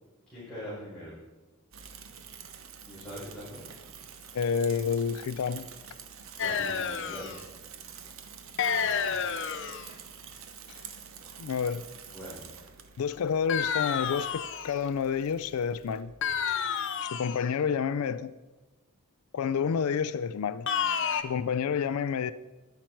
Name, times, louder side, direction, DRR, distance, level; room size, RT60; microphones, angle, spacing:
voice 1, 0.3-1.1 2.9-3.7 6.4-7.3 9.0-9.2 12.1-12.4, equal, 5° left, -12 dB, 5.0 m, -42 dB
Bicycle / Mechanisms, 1.7-16.0, right 7 dB, 60° right, 0.9 m, -48 dB
voice 2, 4.3-5.7 8.8-9.0 10.7-10.8 11.4-11.8 13.0-16.1 16.5-16.6 17.0-18.3 19.3-22.3, left 6 dB, 75° left, 15 dB, 0.4 m, -29 dB
sound 1, 6.4-7.4 8.6-9.9 13.5-14.8 16.2-17.5 20.7-21.2, left 7 dB, 55° left, 0.7 m, -30 dB
11.5 x 10.5 x 4.5 m, 1.1 s
head